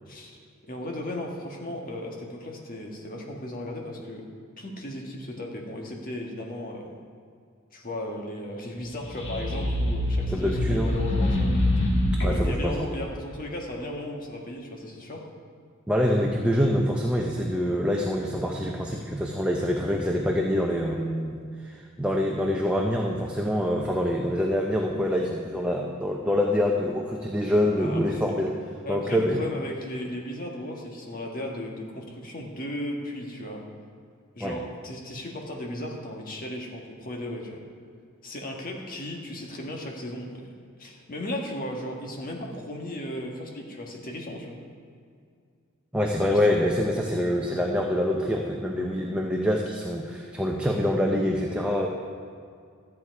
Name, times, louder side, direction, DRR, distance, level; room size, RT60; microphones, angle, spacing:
voice 1, 0.1-4.3 4.6-6.9 7.7-11.6 12.2-15.2 27.8-28.2 28.8-33.6 34.3-37.6 38.2-40.4 40.8-44.6 46.3-46.6, left 1 dB, 40° left, 0 dB, 1.7 m, -36 dB
sound 1, 8.9-12.6, left 1 dB, 60° left, 2.0 m, -25 dB
voice 2, 10.3-11.0 12.2-12.9 15.9-28.5 28.9-29.4 34.4-34.5 45.9-51.9, equal, 5° right, -1 dB, 0.7 m, -25 dB
13.5 x 8.6 x 4.7 m, 2.2 s
head